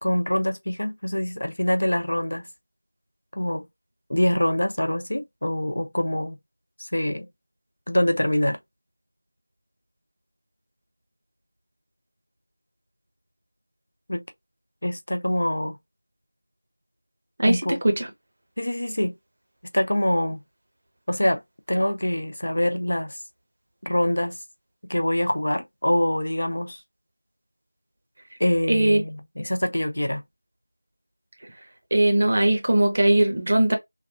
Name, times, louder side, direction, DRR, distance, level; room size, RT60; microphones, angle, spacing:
voice 1, 0.0-2.5 3.3-3.7 4.1-6.4 6.8-7.3 7.9-8.6 14.1-14.2 14.8-15.8 17.5-17.8 18.6-19.1 19.7-20.4 21.1-21.4 21.7-23.2 23.8-24.4 24.8-26.8 28.4-30.2, left 1 dB, 65° left, 0.7 m, -24 dB
voice 2, 17.4-18.1 28.7-29.0 31.9-33.8, right 1 dB, 30° right, 0.7 m, -20 dB
3.3 x 2.3 x 2.6 m
figure-of-eight pair, 175°, 0 cm